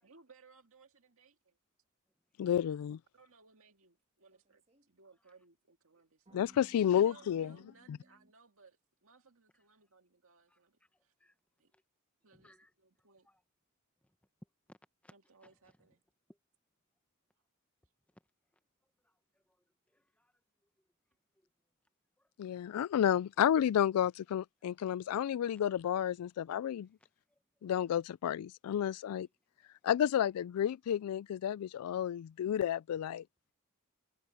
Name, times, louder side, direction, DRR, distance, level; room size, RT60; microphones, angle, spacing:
voice 1, 0.0-1.6 3.1-6.4 6.7-11.1 11.6-11.7 12.2-13.3 15.1-16.0, right 4 dB, 65° right, 2.0 m, -63 dB
voice 2, 2.4-3.0 6.3-7.5 7.9-8.0 22.4-26.9 27.6-29.3 29.8-33.2, left 9 dB, 80° left, 0.3 m, -31 dB
sound 1, 4.3-4.9 6.3-8.3, right 1 dB, 30° right, 1.7 m, -61 dB
voice 3, 12.3-12.7 13.2-13.4 14.7-14.8 15.0-15.1 15.4-15.5 19.0-19.1 19.9-20.3 22.2-22.6 27.3-27.7, left 1 dB, 5° left, 1.0 m, -64 dB
head